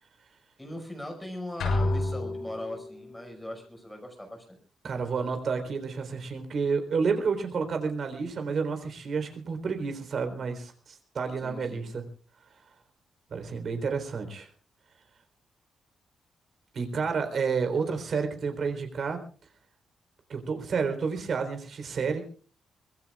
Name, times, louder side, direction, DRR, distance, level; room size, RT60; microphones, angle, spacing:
voice 1, 0.6-4.6 11.4-11.8, left 1 dB, 5° left, 3 dB, 5.6 m, -40 dB
sound 1, 1.6-3.1, left 2 dB, 70° left, 6.9 m, -29 dB
voice 2, 4.8-12.0 13.3-14.5 16.7-19.2 20.3-22.2, right 5 dB, 45° right, 6 dB, 4.0 m, -30 dB
24.5 x 21.0 x 2.4 m, 0.40 s
wide cardioid pair, 170°, 0 cm